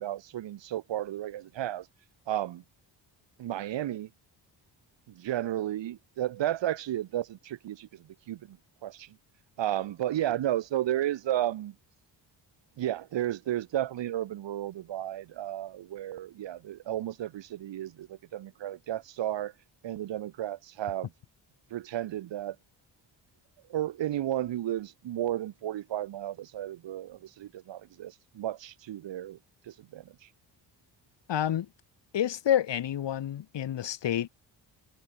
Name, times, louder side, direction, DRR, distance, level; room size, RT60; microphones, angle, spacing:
voice 1, 0.0-1.9 2.3-2.6 3.4-4.1 5.1-9.1 9.6-11.7 12.8-19.5 19.8-21.1 21.7-22.6 23.7-29.4 29.7-30.3, right 12 dB, 85° right, 6.2 m, -33 dB
voice 2, 31.3-31.7 32.1-34.3, left 10 dB, 75° left, 7.8 m, -28 dB
cardioid pair, 65°, 43 cm